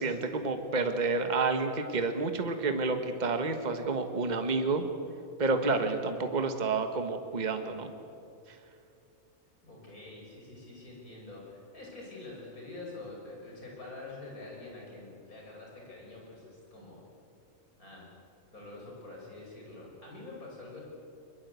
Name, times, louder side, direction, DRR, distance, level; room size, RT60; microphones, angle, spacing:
voice 1, 0.0-4.8 5.4-7.9 8.5-8.6, right 3 dB, 30° right, 7 dB, 1.4 m, -29 dB
voice 2, 5.6-6.0 9.6-17.0 17.8-18.1 18.5-20.8, left 2 dB, 80° left, -2 dB, 6.8 m, -46 dB
23.5 x 21.5 x 8.2 m, 2.6 s
omnidirectional pair, 1.5 m